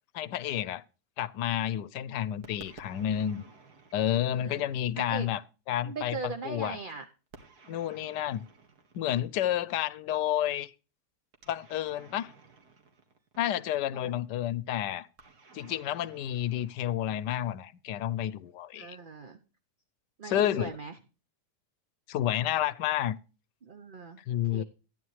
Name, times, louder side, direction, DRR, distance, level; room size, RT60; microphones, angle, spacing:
voice 1, 0.1-0.8 1.2-3.4 3.9-5.4 5.7-6.2 6.4-6.8 7.7-8.4 8.9-10.7 11.5-12.3 13.4-15.1 15.5-19.0 20.2-20.7 22.1-23.2 24.3-24.6, left 11 dB, 85° left, 1.3 m, -30 dB
sound 1, 2.4-5.1 7.3-9.7 11.3-13.8 15.2-17.6, right 4 dB, 65° right, 2.3 m, -55 dB
voice 2, 4.1-4.7 4.9-5.3 5.8-7.0 13.9-14.1 18.8-19.4 20.2-21.0 23.6-24.2 24.5-24.6, right 4 dB, 40° right, 0.8 m, -40 dB
14.5 x 9.9 x 3.2 m
omnidirectional pair, 1.8 m